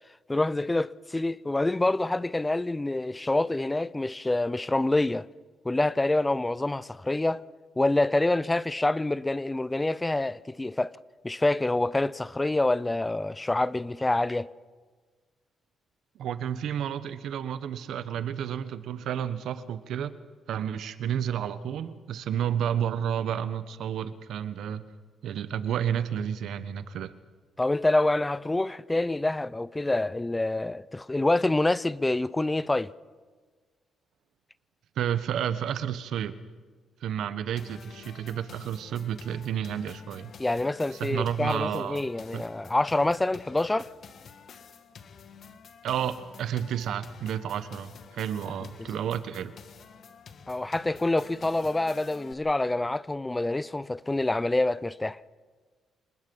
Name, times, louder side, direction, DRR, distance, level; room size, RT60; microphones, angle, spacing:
voice 1, 0.3-5.3 5.6-7.4 7.8-10.9 11.2-14.5 27.6-32.9 40.4-43.9 50.5-55.2, left 2 dB, 15° left, 0.5 m, -26 dB
voice 2, 16.1-20.2 20.5-24.8 25.2-27.1 35.0-36.3 37.0-40.3 40.9-42.0 42.3-42.4 45.8-49.5, right 9 dB, 75° right, 1.2 m, -31 dB
sound 1, 37.6-52.3, left 6 dB, 55° left, 1.6 m, -50 dB
27.5 x 20.0 x 5.5 m
cardioid pair, 90°, 0 cm